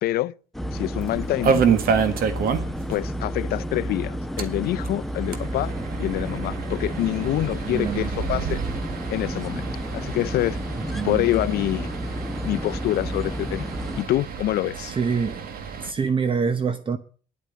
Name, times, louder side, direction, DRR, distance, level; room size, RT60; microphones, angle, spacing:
voice 1, 0.0-0.3 0.7-1.6 2.9-5.7 6.0-8.6 9.1-9.7 9.9-10.6 11.0-11.9 12.4-13.6 13.9-14.9, left 15 dB, 65° left, 0.5 m, -26 dB
sound 1, 0.5-14.0, equal, ahead, 0.7 m, -31 dB
sound 2, 1.0-3.0 3.2-3.3 3.6-3.7 4.2-15.9, right 6 dB, 60° right, 1.7 m, -29 dB
voice 2, 7.6-8.1 10.8-11.3 14.8-15.4 15.8-17.0, right 5 dB, 30° right, 0.9 m, -26 dB
10.5 x 8.9 x 8.4 m
cardioid pair, 110°, 17 cm